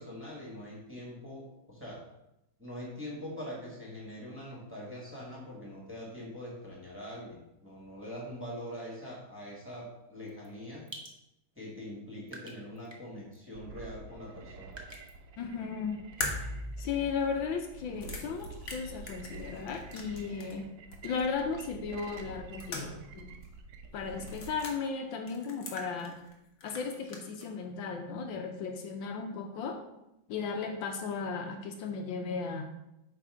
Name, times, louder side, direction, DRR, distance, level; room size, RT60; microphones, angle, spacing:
voice 1, 0.0-2.1 2.6-10.9 11.5-14.8, equal, 5° right, -5 dB, 1.6 m, -43 dB
sound 1, 10.3-10.5 10.9-11.2 11.9-12.0 12.3-13.1 13.3-13.4 14.7-15.1, right 1 dB, 45° right, 0.3 m, -46 dB
sound 2, 13.5-24.6, right 3 dB, 65° right, 1.0 m, -48 dB
voice 2, 15.4-16.0 16.8-20.7 21.0-23.4 23.9-26.2 26.6-29.8 30.3-32.6, left 5 dB, 75° left, 3 dB, 1.4 m, -35 dB
sound 3, 16.2-20.6 20.9-21.0 22.2-23.2 23.4-23.5 24.2-24.8 25.3-26.3 26.6-27.5, left 2 dB, 45° left, 1.0 m, -41 dB
8.0 x 3.4 x 4.9 m, 0.88 s
omnidirectional pair, 2.2 m